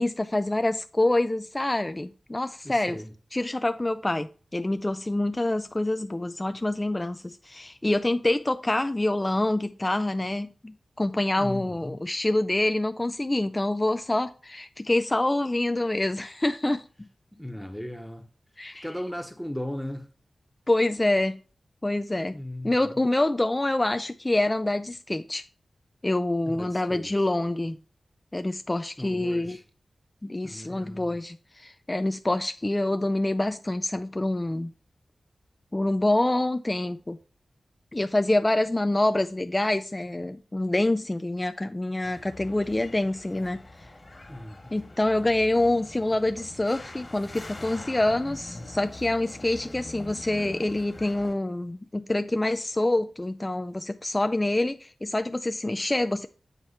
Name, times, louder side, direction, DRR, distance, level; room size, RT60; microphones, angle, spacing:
voice 1, 0.0-3.0 3.3-17.1 18.6-18.9 20.7-21.4 21.8-22.4 22.6-25.4 26.0-27.8 28.3-29.6 30.2-34.7 35.7-37.2 37.9-43.9 44.7-56.3, left 1 dB, 20° left, 0.3 m, -26 dB
voice 2, 2.6-3.1 11.4-12.0 17.4-18.2 18.8-20.1 22.3-22.9 26.4-27.1 29.0-29.6 30.4-31.2 44.3-44.7, left 1 dB, 5° left, 0.9 m, -37 dB
sound 1, 42.0-51.3, left 2 dB, 35° left, 1.6 m, -43 dB
7.9 x 3.0 x 5.6 m
wide cardioid pair, 80°, 0 cm